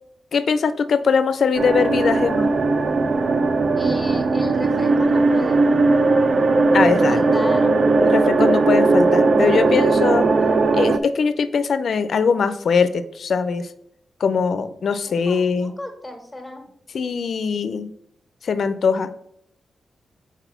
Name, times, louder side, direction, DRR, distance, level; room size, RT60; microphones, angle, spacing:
voice 1, 0.3-2.5 6.7-7.2 8.0-10.3 10.7-13.7 14.2-15.7 16.9-17.9 18.4-19.1, left 5 dB, 70° left, 12 dB, 0.4 m, -21 dB
sound 1, 1.5-11.0, right 3 dB, 50° right, 0.4 m, -18 dB
voice 2, 3.7-5.8 7.1-7.8 9.3-10.0 15.1-16.6, left 1 dB, 5° right, 2 dB, 1.7 m, -34 dB
4.3 x 4.0 x 5.6 m, 0.73 s
cardioid pair, 70°, 0 cm